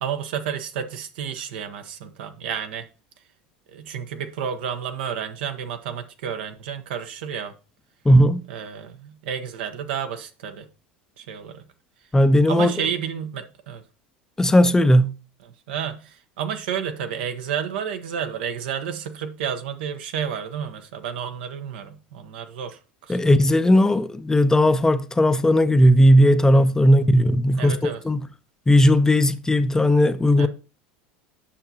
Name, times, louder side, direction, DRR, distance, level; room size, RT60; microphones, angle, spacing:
voice 1, 0.0-2.9 3.7-7.5 8.5-10.7 11.2-11.6 12.5-13.8 15.4-23.3 26.5-26.6 27.6-28.0 30.4-30.5, right 8 dB, 80° right, 0.9 m, -31 dB
voice 2, 8.1-8.4 12.1-12.7 14.4-15.1 23.1-28.2 28.7-30.5, equal, 10° left, 0.5 m, -17 dB
8.5 x 5.8 x 2.8 m
hypercardioid pair, 100°, 5 cm